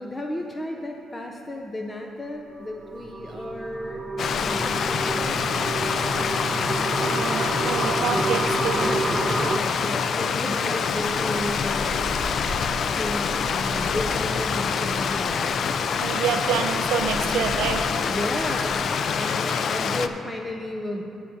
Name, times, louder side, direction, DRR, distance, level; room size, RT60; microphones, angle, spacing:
voice 1, 0.0-4.1 4.4-5.4 8.1-8.4 8.8-12.1 12.9-15.6 18.1-21.0, left 1 dB, 20° left, 2 dB, 0.6 m, -33 dB
sound 1, 2.6-9.6, right 2 dB, 25° right, 0.6 m, -29 dB
Stream, 4.2-20.1, left 6 dB, 60° left, 0.4 m, -26 dB
sound 2, 4.7-10.2 10.7-18.7, left 1 dB, 40° left, 1.5 m, -40 dB
voice 2, 7.0-8.8 16.0-17.8 19.2-19.6, right 8 dB, 90° right, 6 dB, 0.5 m, -28 dB
15.0 x 7.4 x 2.8 m, 2.7 s
cardioid pair, 90°, 0 cm